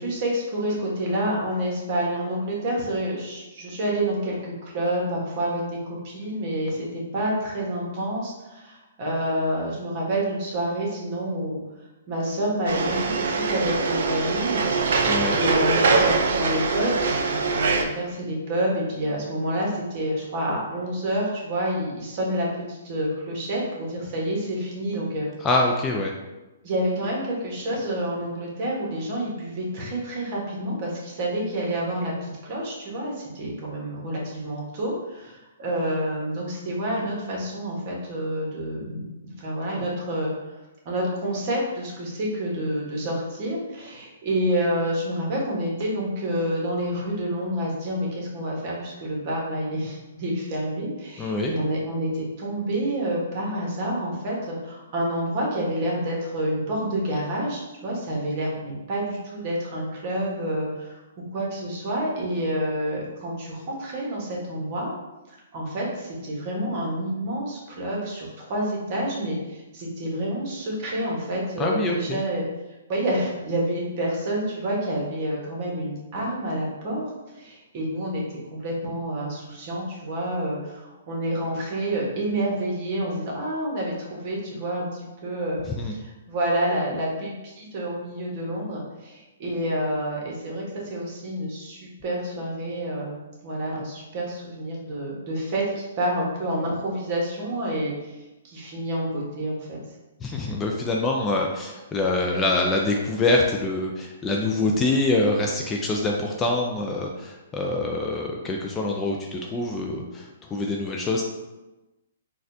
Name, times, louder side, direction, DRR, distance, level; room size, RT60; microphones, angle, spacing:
voice 1, 0.0-11.6 12.1-14.6 14.9-25.3 26.6-39.0 39.4-40.3 40.8-61.0 61.3-64.9 65.5-72.4 72.9-77.1 77.3-78.2 78.6-85.6 85.9-98.2 98.4-99.8, right 1 dB, 40° right, -3 dB, 1.2 m, -28 dB
sound 1, 12.7-17.8, right 4 dB, 70° right, 0.4 m, -23 dB
voice 2, 15.1-15.4 25.4-26.1 51.2-51.5 71.6-72.2 85.8-85.9 100.2-111.2, left 2 dB, 15° left, -1 dB, 0.3 m, -25 dB
4.1 x 2.3 x 2.6 m, 1.1 s
hypercardioid pair, 145°, 0 cm